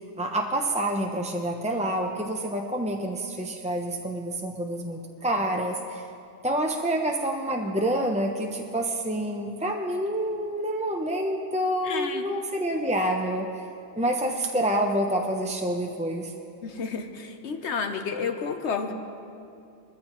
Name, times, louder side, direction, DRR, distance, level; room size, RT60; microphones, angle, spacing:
voice 1, 0.2-6.1 6.4-13.7 14.0-16.3, right 1 dB, 10° right, 2 dB, 0.4 m, -27 dB
voice 2, 11.8-12.3 16.6-18.9, left 5 dB, 75° left, 6 dB, 1.1 m, -31 dB
21.0 x 14.5 x 3.0 m, 2.6 s
omnidirectional pair, 1.2 m